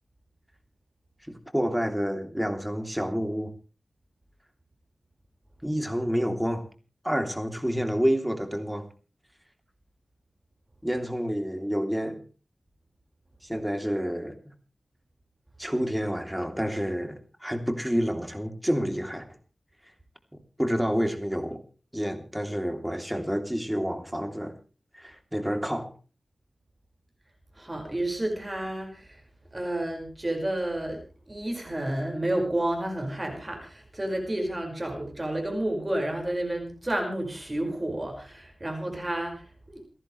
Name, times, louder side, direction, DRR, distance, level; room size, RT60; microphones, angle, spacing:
voice 1, 1.3-3.5 5.6-6.6 7.0-8.9 10.8-12.2 13.4-14.5 15.6-19.2 20.6-21.6 21.9-24.5 24.9-25.9, equal, 5° right, 6 dB, 3.1 m, -29 dB
voice 2, 27.5-29.2 29.5-39.8, right 1 dB, 25° right, 2 dB, 5.3 m, -31 dB
29.5 x 11.0 x 3.3 m, 0.35 s
wide cardioid pair, 70°, 0 cm